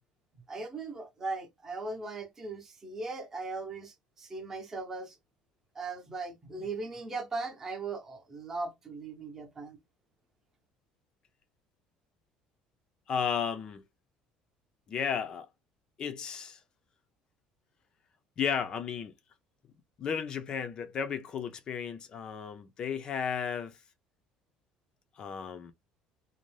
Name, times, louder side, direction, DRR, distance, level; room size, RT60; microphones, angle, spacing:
voice 1, 0.5-5.2 5.7-9.8, right 3 dB, 15° right, 0.7 m, -38 dB
voice 2, 13.1-13.8 14.9-15.5 16.0-16.6 18.4-19.1 20.0-23.7 25.2-25.7, left 7 dB, 35° left, 0.4 m, -34 dB
2.6 x 2.0 x 3.0 m
cardioid pair, 160°, 2 cm